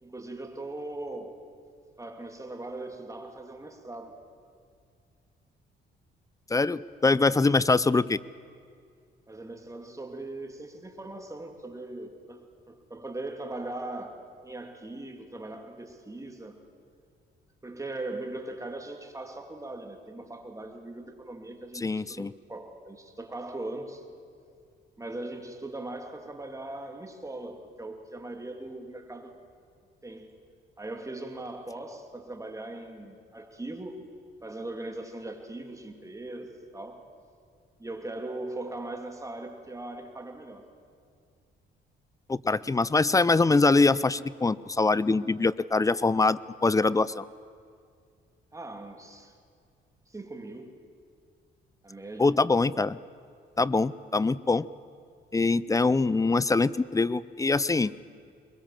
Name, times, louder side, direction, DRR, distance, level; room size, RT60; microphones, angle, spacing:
voice 1, 0.0-1.4 2.0-4.2 9.3-16.6 17.6-24.0 25.0-29.3 30.0-30.3 30.8-34.1 34.4-37.1 37.8-40.6 48.5-49.4 50.1-50.7 51.8-52.3, right 2 dB, 15° right, 4 dB, 2.5 m, -40 dB
voice 2, 6.5-8.2 21.8-22.3 42.3-47.2 52.2-53.0 53.6-54.7 55.3-57.9, left 3 dB, 15° left, 19 dB, 0.5 m, -23 dB
22.5 x 22.0 x 7.4 m, 2.2 s
cardioid pair, 90°, 20 cm